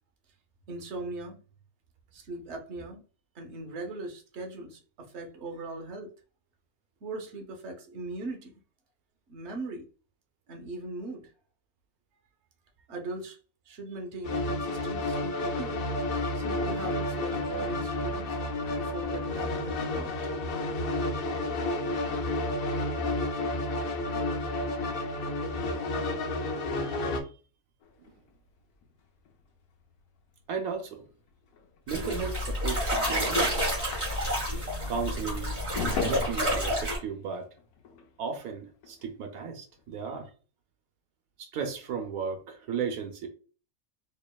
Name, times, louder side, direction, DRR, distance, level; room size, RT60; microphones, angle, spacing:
voice 1, 0.7-1.4 2.1-3.0 3.3-6.1 7.0-8.5 9.3-9.8 10.5-11.3 12.8-13.4 13.6-15.9 16.3-18.4 18.7-20.3, right 2 dB, 55° right, 2 dB, 1.1 m, -39 dB
sound 1, 14.2-27.2, left 2 dB, 60° left, 0.6 m, -31 dB
voice 2, 26.8-27.1 28.0-28.1 30.5-31.0 31.9-33.7 34.9-37.5 38.2-40.3 41.4-43.3, right 6 dB, 85° right, 5 dB, 1.2 m, -35 dB
sound 2, 27.8-34.6 34.9-39.5 39.8-40.3, left 5 dB, 90° left, 1.2 m, -41 dB
sound 3, 31.9-37.0, equal, 30° right, 2.0 m, -29 dB
4.4 x 2.8 x 2.3 m, 0.37 s
omnidirectional pair, 1.5 m